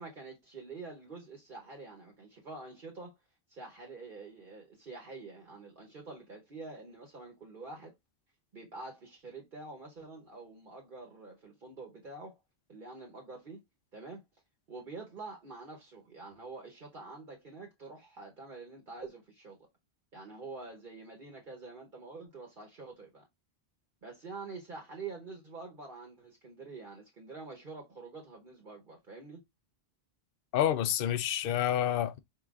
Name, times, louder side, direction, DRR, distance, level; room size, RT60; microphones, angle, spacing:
voice 1, 0.0-3.2 3.5-7.9 8.5-12.4 12.7-13.6 13.9-14.2 14.7-19.6 20.1-23.3 24.0-29.4, right 3 dB, 55° right, 1.2 m, -46 dB
voice 2, 30.5-32.2, left 10 dB, 65° left, 0.7 m, -28 dB
4.8 x 3.7 x 2.4 m
omnidirectional pair, 1.1 m